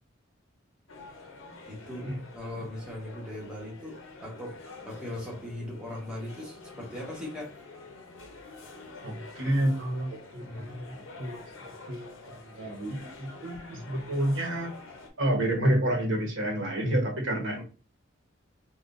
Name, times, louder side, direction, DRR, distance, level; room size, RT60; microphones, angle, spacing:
sound 1, 0.9-15.1, left 3 dB, 90° left, 0.8 m, -47 dB
voice 1, 1.7-4.6 4.8-7.6 10.4-10.7 13.7-13.8 17.5-17.6, left 1 dB, 5° right, -3 dB, 1.1 m, -39 dB
voice 2, 9.0-14.7 15.2-17.6, right 1 dB, 80° right, 1 dB, 1.0 m, -29 dB
3.7 x 2.3 x 2.5 m, 0.33 s
head